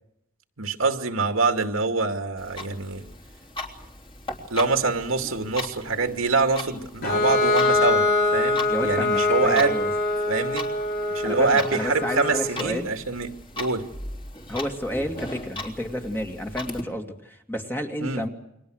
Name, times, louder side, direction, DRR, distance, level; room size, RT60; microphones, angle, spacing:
voice 1, 0.6-3.0 4.5-8.1 8.3-9.8 10.3-10.7 11.1-13.3 13.6-13.9 18.0-18.2, right 3 dB, 85° right, 2.4 m, -25 dB
Clock, 2.4-16.8, left 1 dB, 25° left, 3.4 m, -39 dB
Bowed string instrument, 7.0-12.6, left 2 dB, 50° left, 5.9 m, -24 dB
voice 2, 8.7-9.9 11.2-12.9 14.5-18.3, equal, 10° left, 2.3 m, -31 dB
29.0 x 23.5 x 6.5 m
head